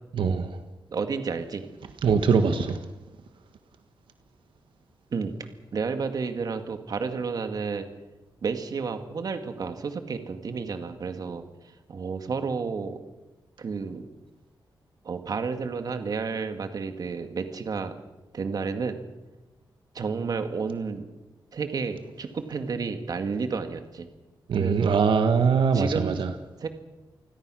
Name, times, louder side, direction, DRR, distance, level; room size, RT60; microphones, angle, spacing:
voice 1, 0.1-0.5 2.0-2.8 24.5-26.3, right 6 dB, 85° right, 7 dB, 1.7 m, -22 dB
voice 2, 0.9-1.6 5.1-5.3 5.7-7.9 8.4-11.4 11.9-13.0 13.6-14.1 15.0-18.0 18.3-19.0 19.9-21.1 21.5-24.1 24.6-25.0 25.7-26.2 26.6-26.7, right 5 dB, 50° right, 7 dB, 2.2 m, -31 dB
28.5 x 20.5 x 6.4 m, 1.1 s
wide cardioid pair, 155°, 8 cm